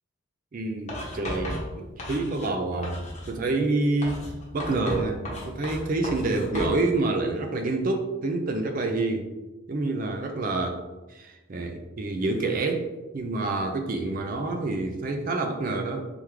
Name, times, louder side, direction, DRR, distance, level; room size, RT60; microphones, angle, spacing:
voice 1, 0.5-4.2 4.5-9.3 9.7-10.8 11.1-12.9 13.1-16.0, right 2 dB, 40° right, 4 dB, 0.4 m, -27 dB
Writing, 0.9-2.6 2.8-3.4 4.0-6.8, left 1 dB, 30° left, 0.9 m, -35 dB
3.5 x 3.4 x 3.1 m, 1.1 s
head